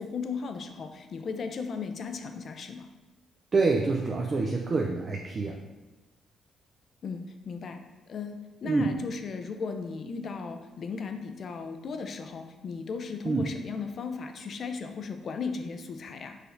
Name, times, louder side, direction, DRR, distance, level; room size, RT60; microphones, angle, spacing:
voice 1, 0.0-2.9 7.0-16.4, left 5 dB, 55° left, 7 dB, 0.4 m, -36 dB
voice 2, 3.5-5.6 8.6-8.9 13.2-13.5, right 3 dB, 40° right, 0 dB, 0.4 m, -26 dB
4.8 x 3.2 x 2.6 m, 1.1 s
cardioid pair, 90°, 0 cm